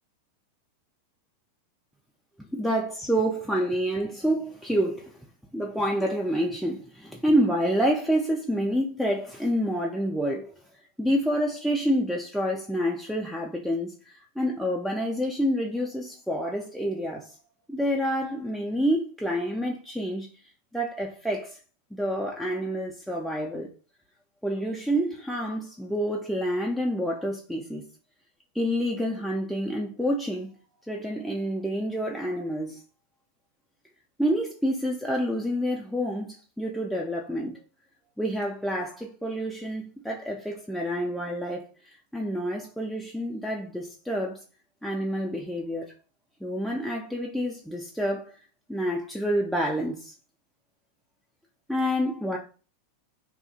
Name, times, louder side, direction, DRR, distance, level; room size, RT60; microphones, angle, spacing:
voice 1, 2.4-5.2 5.5-10.5 11.0-17.4 17.7-20.3 20.7-21.6 21.9-23.7 24.4-27.9 28.5-30.5 30.9-32.8 34.2-37.6 38.2-44.4 44.8-45.9 46.4-48.4 48.7-50.1 51.7-52.4, equal, ahead, 0.3 m, -28 dB
2.8 x 2.3 x 2.6 m
figure-of-eight pair, 90°, 0 cm